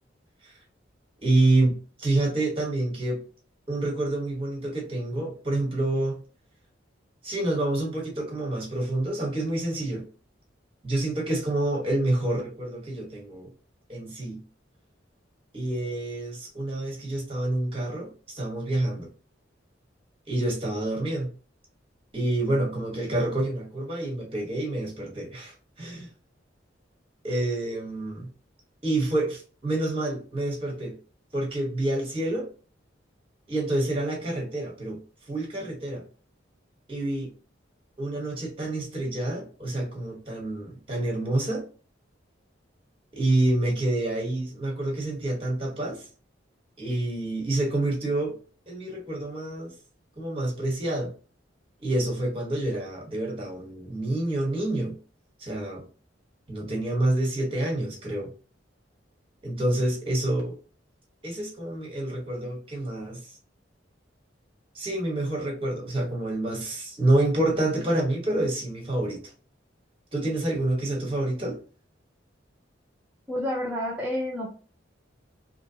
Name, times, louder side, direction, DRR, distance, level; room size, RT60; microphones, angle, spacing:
voice 1, 1.2-1.7 2.0-3.2 3.7-6.2 7.2-10.0 10.8-13.5 13.9-14.4 15.5-19.1 20.3-21.3 22.1-26.1 27.2-28.3 28.8-31.0 31.3-32.5 33.5-35.0 35.3-36.0 36.9-37.3 38.0-41.6 43.1-46.1 46.8-48.4 48.7-49.7 50.2-51.1 51.8-54.9 55.4-55.8 56.5-58.3 59.4-60.6 61.2-63.2 64.7-69.2 70.1-71.6, right 1 dB, 30° right, -1 dB, 1.0 m, -27 dB
voice 2, 73.3-74.5, left 1 dB, 5° right, -6 dB, 0.4 m, -29 dB
2.7 x 2.1 x 2.7 m, 0.37 s
head